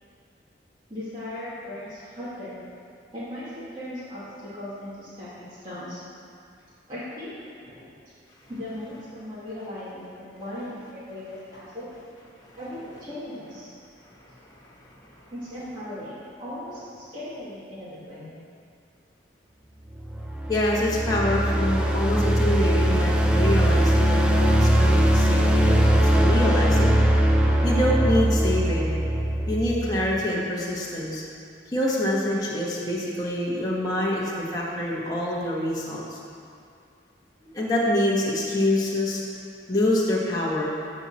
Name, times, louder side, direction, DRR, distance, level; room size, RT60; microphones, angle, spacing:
voice 1, 0.9-2.6 3.1-6.0 6.9-7.3 7.7-7.9 8.5-11.9 12.5-13.7 15.3-18.3, left 1 dB, 25° right, -13 dB, 2.5 m, -37 dB
voice 2, 14.0-14.8 15.1-15.2 20.5-26.9 27.6-28.9 29.5-31.2 31.7-36.2 37.4-39.2 39.7-40.7, left 1 dB, 20° left, -6 dB, 1.5 m, -26 dB
sound 1, 20.0-30.2, right 1 dB, 5° right, 0.6 m, -21 dB
11.5 x 4.5 x 7.6 m, 2.3 s
head